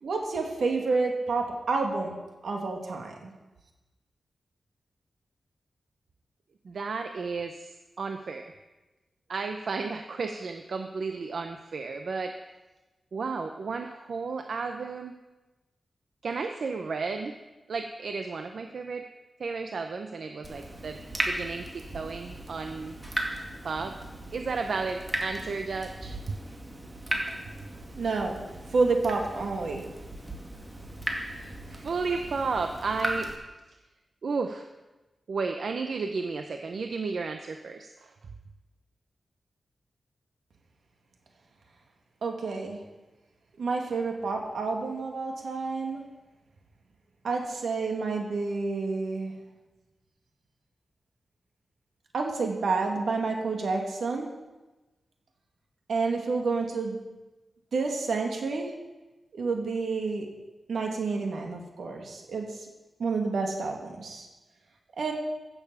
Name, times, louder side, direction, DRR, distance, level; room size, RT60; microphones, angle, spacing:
voice 1, 0.0-3.3 27.9-28.4 28.7-29.8 42.2-42.8 43.6-46.0 47.2-49.3 52.1-54.3 55.9-57.0 57.7-58.7 59.3-60.3 60.7-62.7 63.0-64.3 65.0-65.1, right 4 dB, 85° right, 2 dB, 2.3 m, -29 dB
voice 2, 6.6-7.7 8.0-8.4 9.3-12.4 13.1-15.2 16.2-17.3 17.7-19.1 19.4-21.0 21.3-23.0 23.6-23.9 24.3-26.2 31.3-33.3 34.2-34.6 35.3-38.1, right 4 dB, 70° right, 6 dB, 0.8 m, -33 dB
Water tap faucet / Drip, 20.4-33.4, right 1 dB, 20° right, 2.2 m, -36 dB
15.5 x 7.2 x 6.9 m, 1.1 s
wide cardioid pair, 130°, 0 cm